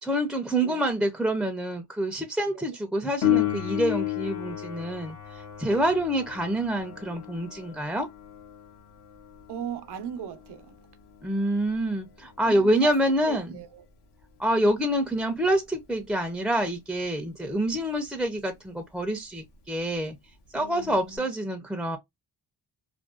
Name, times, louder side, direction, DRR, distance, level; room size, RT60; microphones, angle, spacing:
voice 1, 0.0-8.1 11.2-13.6 14.4-20.1 20.5-22.0, right 1 dB, ahead, 0.4 m, -27 dB
Piano, 3.2-13.6 21.2-21.3, left 13 dB, 90° left, 0.9 m, -33 dB
voice 2, 9.5-10.8 12.4-12.9 13.3-13.8 17.4-17.6 20.5-21.3, right 8 dB, 80° right, 0.6 m, -38 dB
2.5 x 2.2 x 2.3 m
cardioid pair, 110°, 40 cm